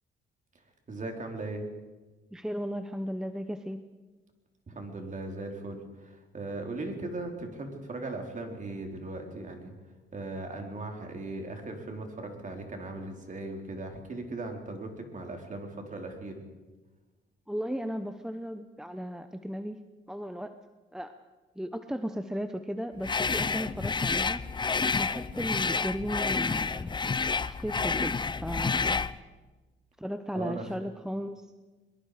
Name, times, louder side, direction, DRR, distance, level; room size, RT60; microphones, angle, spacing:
voice 1, 0.9-1.6 4.7-9.7 10.1-16.4 30.3-30.6, right 2 dB, 40° right, 3 dB, 4.1 m, -38 dB
voice 2, 2.3-3.8 17.5-19.8 20.1-20.6 20.9-21.1 21.6-24.4 25.0-27.1 27.4-28.1 28.4-29.0 30.0-31.5, equal, 5° right, 9 dB, 1.0 m, -35 dB
sound 1, 23.0-29.2, left 4 dB, 25° left, 0.6 m, -29 dB
23.0 x 22.5 x 5.1 m, 1.2 s
cardioid pair, 90°, 20 cm